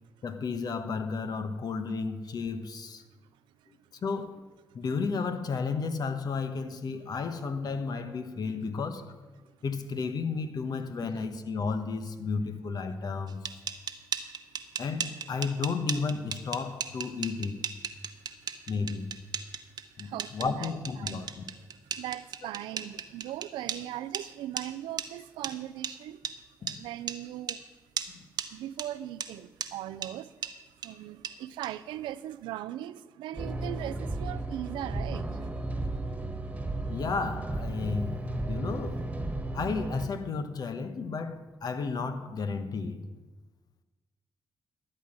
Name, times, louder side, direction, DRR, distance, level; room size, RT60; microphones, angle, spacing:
voice 1, 0.2-3.0 3.7-4.4 4.7-9.0 9.6-13.5 14.8-17.6 18.7-19.2 20.0-21.3 26.6-26.8 28.1-28.3 36.9-39.0 39.5-43.1, left 4 dB, 55° left, 1.1 m, -33 dB
sound 1, 13.3-23.8 24.1-24.2 24.6-24.7 25.0-25.1 25.4-25.5 25.8-25.9 26.2-26.3 26.7-26.8 27.1-27.2 27.5-27.6 28.0-28.1 28.4-28.5 28.8-28.9 29.2-29.3 29.6-29.7 30.0-30.1 30.4-30.5 30.8-30.9 31.2-31.3 31.6-31.7, right 7 dB, 60° right, 0.9 m, -34 dB
voice 2, 19.5-20.7 21.0-21.2 21.8-26.2 26.6-27.6 28.5-35.5, right 13 dB, 80° right, 0.4 m, -39 dB
sound 2, 33.4-40.1, right 2 dB, 15° right, 1.6 m, -34 dB
12.5 x 8.0 x 6.1 m
supercardioid pair, 55°, 8 cm